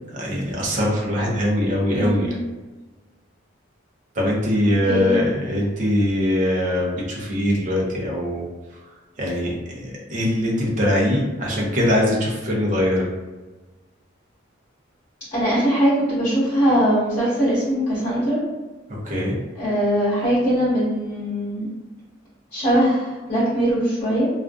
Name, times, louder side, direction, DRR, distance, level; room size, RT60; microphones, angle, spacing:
voice 1, 0.1-2.4 4.2-8.4 9.2-13.1 19.0-19.4, left 1 dB, 40° right, -3 dB, 0.7 m, -22 dB
voice 2, 1.9-2.3 4.9-5.2 15.3-18.4 19.5-21.7 22.5-24.3, equal, 40° left, -12 dB, 1.1 m, -21 dB
2.5 x 2.4 x 2.3 m, 1.2 s
head